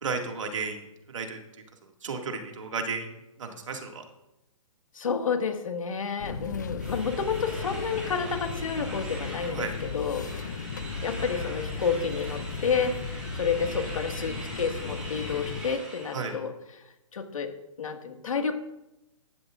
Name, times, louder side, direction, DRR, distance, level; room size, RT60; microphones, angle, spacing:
voice 1, 0.0-0.8 1.1-1.4 2.0-3.1 3.4-4.0 9.5-9.7 16.1-16.3, right 4 dB, 65° right, 2 dB, 2.2 m, -33 dB
voice 2, 4.9-16.8 17.1-17.5 17.8-18.5, left 6 dB, 70° left, 5 dB, 1.9 m, -30 dB
sound 1, 6.2-15.6, left 4 dB, 35° left, 0.6 m, -36 dB
sound 2, 6.8-16.3, right 1 dB, 5° right, 2.0 m, -42 dB
15.0 x 12.5 x 2.6 m, 0.93 s
hypercardioid pair, 180°, 18 cm